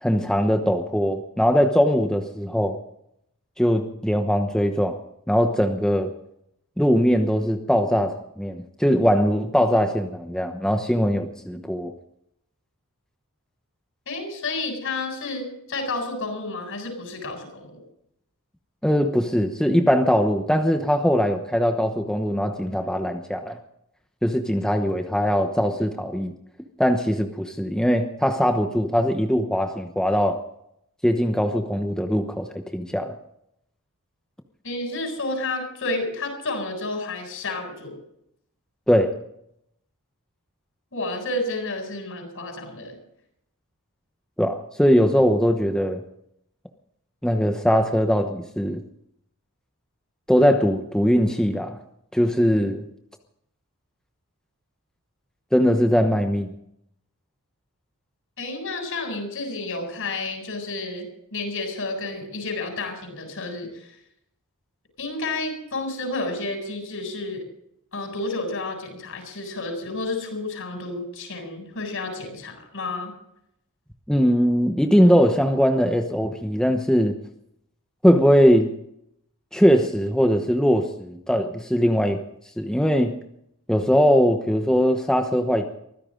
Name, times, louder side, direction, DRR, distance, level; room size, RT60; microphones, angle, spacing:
voice 1, 0.0-2.8 3.6-5.0 5.3-6.1 6.8-11.9 18.8-23.6 24.2-26.3 26.8-30.4 31.0-33.2 38.9-39.1 44.4-46.0 47.2-48.8 50.3-51.8 52.1-52.8 55.5-56.5 74.1-77.2 78.0-78.7 79.5-82.2 82.6-83.1 83.7-85.7, equal, 5° left, 5 dB, 1.0 m, -21 dB
voice 2, 14.1-17.8 34.6-38.0 40.9-43.0 58.4-61.1 61.3-63.9 65.0-67.4 67.9-73.1, left 2 dB, 65° left, 3 dB, 7.7 m, -30 dB
23.5 x 15.5 x 3.9 m, 0.75 s
head